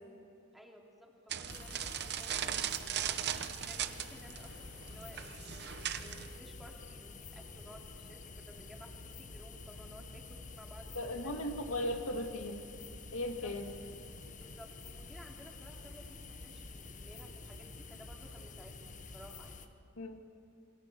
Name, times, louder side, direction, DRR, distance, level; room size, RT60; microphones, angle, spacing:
voice 1, 0.5-11.3 13.1-13.8 14.3-19.7, equal, ahead, 0 dB, 2.7 m, -56 dB
sound 1, 1.3-6.4, right 10 dB, 55° right, 0.8 m, -38 dB
sound 2, 1.5-19.7, left 3 dB, 40° left, 1.2 m, -49 dB
sound 3, 8.5-17.1, equal, 65° left, 6.8 m, -63 dB
voice 2, 10.9-12.6 13.1-13.7 20.0-20.2, left 1 dB, 80° left, 4 dB, 1.9 m, -37 dB
27.5 x 21.0 x 6.8 m, 2.7 s
head